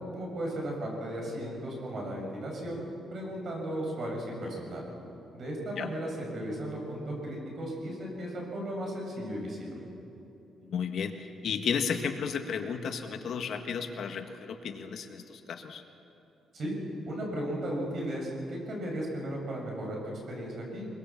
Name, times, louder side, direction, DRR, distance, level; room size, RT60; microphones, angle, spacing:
voice 1, 0.1-2.8 3.1-4.8 5.3-9.8 16.5-16.8 17.1-20.9, right 1 dB, 45° right, -1 dB, 6.9 m, -35 dB
voice 2, 10.6-15.8, left 6 dB, 55° left, 5 dB, 1.5 m, -33 dB
24.0 x 23.0 x 7.3 m, 3.0 s
cardioid pair, 160°, 0 cm